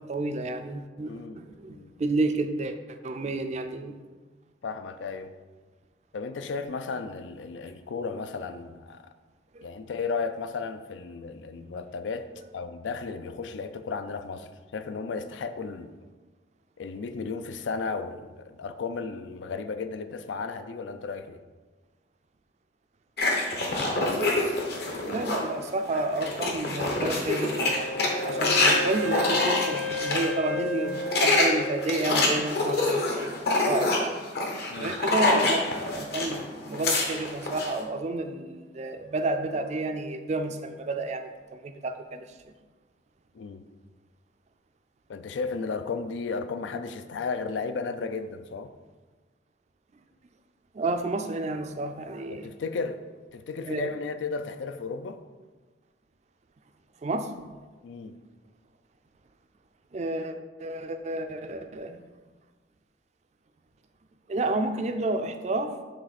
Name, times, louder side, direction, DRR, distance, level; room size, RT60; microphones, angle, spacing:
voice 1, 0.0-3.9 9.5-9.7 25.0-34.1 34.8-42.4 48.1-48.2 50.7-52.5 53.6-53.9 57.0-57.3 59.9-62.0 64.3-65.7, right 2 dB, 35° right, 7 dB, 0.4 m, -31 dB
voice 2, 1.1-1.4 1.7-1.9 4.6-5.3 6.1-9.0 9.6-12.3 12.5-15.9 16.8-21.4 34.7-35.0 43.3-43.6 45.1-48.7 52.3-53.0 53.3-55.2 57.8-58.2, left 4 dB, 80° left, 10 dB, 0.4 m, -34 dB
sound 1, 23.2-25.5 25.9-30.3 30.8-36.4 36.6-37.7, left 2 dB, 55° left, 0.9 m, -26 dB
Wind instrument woodwind instrument, 27.6-32.4, left 1 dB, 90° right, 1.0 m, -33 dB
7.4 x 3.1 x 4.1 m, 1.3 s
head